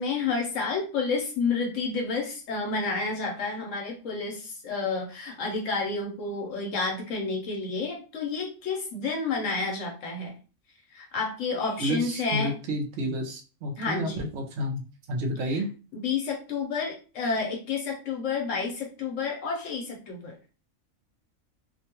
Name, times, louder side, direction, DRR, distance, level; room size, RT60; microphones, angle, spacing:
voice 1, 0.0-10.3 10.9-12.6 13.8-14.3 15.5-15.6 15.9-20.4, left 4 dB, 70° left, 1 dB, 0.9 m, -30 dB
voice 2, 11.8-14.8 15.1-15.7, right 1 dB, 65° right, 3 dB, 0.8 m, -30 dB
2.5 x 2.2 x 2.8 m, 0.35 s
omnidirectional pair, 1.4 m